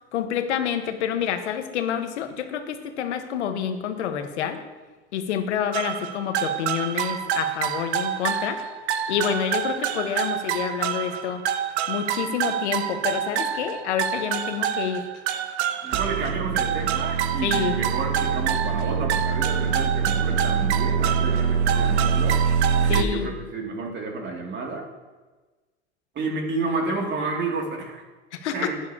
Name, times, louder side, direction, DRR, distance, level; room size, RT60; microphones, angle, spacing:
voice 1, 0.1-4.6 5.1-8.6 9.1-11.4 11.9-15.1 17.4-17.8 22.9-23.3 28.3-28.7, left 8 dB, 85° left, 7 dB, 1.2 m, -28 dB
sound 1, 5.7-23.0, right 7 dB, 75° right, 0.8 m, -25 dB
voice 2, 15.8-22.4 22.8-24.8 26.1-28.0 28.5-28.8, right 3 dB, 35° right, 0 dB, 2.4 m, -30 dB
11.0 x 9.5 x 2.8 m, 1.2 s
hypercardioid pair, 105°, 34 cm